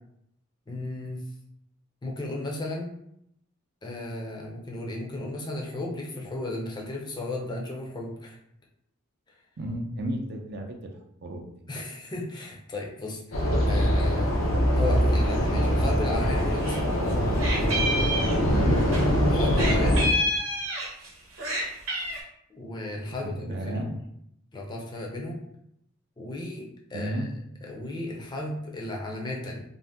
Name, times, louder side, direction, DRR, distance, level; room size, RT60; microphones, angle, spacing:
voice 1, 0.7-1.2 2.0-2.9 3.8-8.4 11.7-16.9 19.2-20.0 22.5-23.9 24.5-25.4 26.2-27.3 27.6-29.6, left 2 dB, 20° left, -1 dB, 0.5 m, -35 dB
voice 2, 9.6-10.9 11.2-11.4 13.7-13.9 18.4-18.8 23.2-24.0 26.9-27.3, right 1 dB, 55° right, 3 dB, 0.4 m, -32 dB
sound 1, 13.3-20.1, equal, 90° left, 0.6 m, -23 dB
Meow, 16.2-16.8 17.1-19.0 19.6-21.1 21.4-22.2, equal, 85° right, 0.8 m, -29 dB
2.6 x 2.1 x 3.4 m, 0.76 s
head